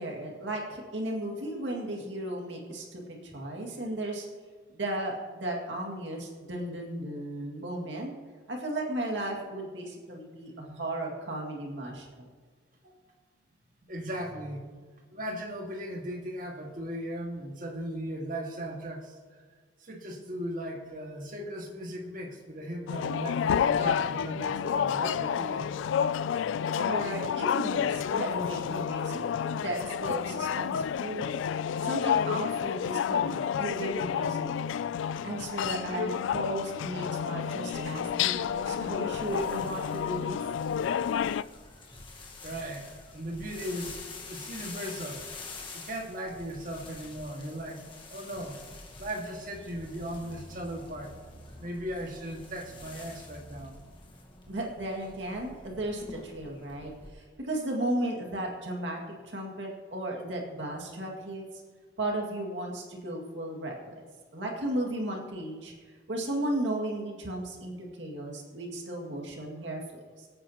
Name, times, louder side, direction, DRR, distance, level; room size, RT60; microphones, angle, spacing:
voice 1, 0.0-4.3 4.7-8.1 8.5-12.3 26.8-29.2 29.5-31.3 31.8-34.5 35.2-40.4 54.5-61.4 62.0-64.1 64.3-65.7 66.1-70.3, right 1 dB, 75° right, -1 dB, 2.1 m, -35 dB
voice 2, 13.9-14.7 15.1-19.1 19.8-25.7 42.4-42.9 43.1-44.0 44.3-45.3 45.7-47.8 48.1-48.6 49.0-51.1 51.6-53.7, right 1 dB, 45° right, 1 dB, 1.9 m, -37 dB
sound 1, 22.9-41.4, left 8 dB, 80° left, 0.3 m, -30 dB
sound 2, 37.7-57.1, left 3 dB, 25° left, 1.4 m, -47 dB
sound 3, 48.8-53.8, equal, 20° right, 2.7 m, -53 dB
23.5 x 8.9 x 2.9 m, 1.5 s
head